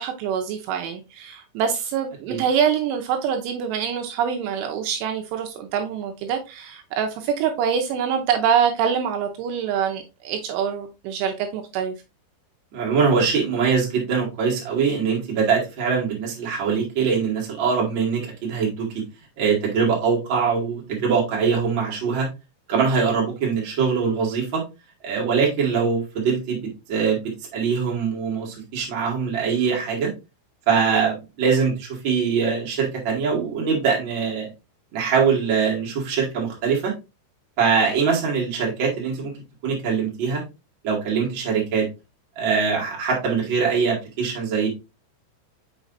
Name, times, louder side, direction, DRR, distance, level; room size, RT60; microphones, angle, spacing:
voice 1, 0.0-11.9, right 7 dB, 80° right, 3.0 m, -25 dB
voice 2, 12.7-19.0 19.4-22.3 22.7-24.6 25.0-30.1 30.6-34.5 34.9-36.9 37.6-39.3 39.6-40.4 40.8-41.9 42.3-44.7, right 5 dB, 40° right, 1.7 m, -22 dB
6.1 x 6.0 x 2.6 m
omnidirectional pair, 5.9 m